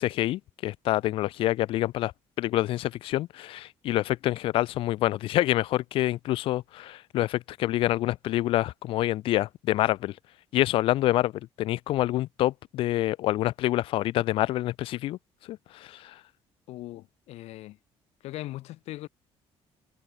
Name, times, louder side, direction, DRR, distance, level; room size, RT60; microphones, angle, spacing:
voice 1, 0.0-2.1 2.4-10.2 10.5-11.3 11.6-15.2 15.5-16.2, left 15 dB, 55° left, 0.3 m, -27 dB
voice 2, 16.7-17.8 18.2-19.1, left 16 dB, 80° left, 7.0 m, -39 dB
cardioid pair, 175°, 11 cm